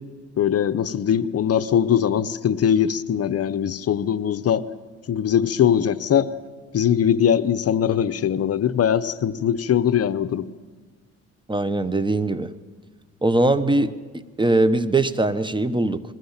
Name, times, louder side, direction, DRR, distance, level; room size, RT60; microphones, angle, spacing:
voice 1, 0.4-4.6 5.1-6.3 6.7-10.5, left 9 dB, 50° left, 14 dB, 0.8 m, -21 dB
voice 2, 11.5-12.5 13.2-13.9 14.4-16.0, right 2 dB, 15° right, 13 dB, 1.0 m, -21 dB
21.5 x 17.0 x 7.3 m, 1.4 s
cardioid pair, 90°, 30 cm